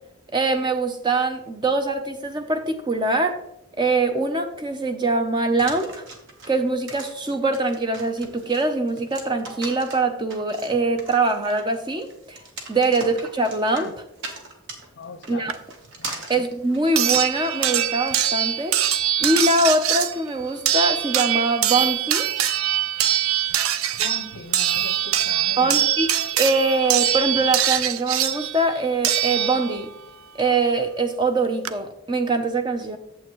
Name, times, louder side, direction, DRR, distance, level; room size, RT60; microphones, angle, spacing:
voice 1, 0.3-3.4 3.8-6.0 6.5-12.4 12.7-13.9 15.3-15.6 16.3-18.7 19.2-22.3 25.6-26.1 26.3-29.9 30.3-33.0, right 2 dB, 20° right, 6 dB, 0.6 m, -23 dB
sound 1, 5.6-17.6, right 3 dB, 55° right, 1.3 m, -39 dB
voice 2, 15.0-15.5 16.0-16.2 24.0-25.8, left 4 dB, 50° left, 10 dB, 0.5 m, -39 dB
sound 2, 15.5-15.6 17.0-30.0 31.2-31.3 31.6-31.7, right 11 dB, 70° right, 0.4 m, -23 dB
8.5 x 7.5 x 3.0 m, 0.80 s
head